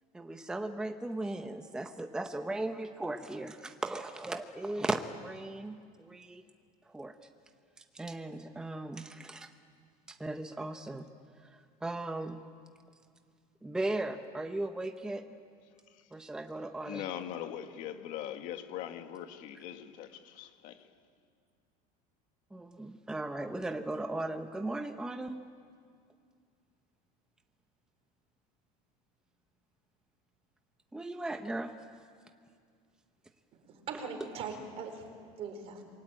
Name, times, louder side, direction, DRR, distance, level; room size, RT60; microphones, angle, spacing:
voice 1, 0.1-6.4 6.9-7.1 7.9-9.5 10.1-11.1 11.4-12.4 13.6-15.3 16.1-17.1 22.5-25.4 30.9-31.8, right 2 dB, 5° right, 0.8 m, -37 dB
voice 2, 16.9-20.9, left 10 dB, 45° left, 1.9 m, -41 dB
voice 3, 33.5-35.0 35.4-35.8, right 5 dB, 35° right, 4.3 m, -41 dB
27.5 x 23.0 x 8.7 m
cardioid pair, 170°, 18 cm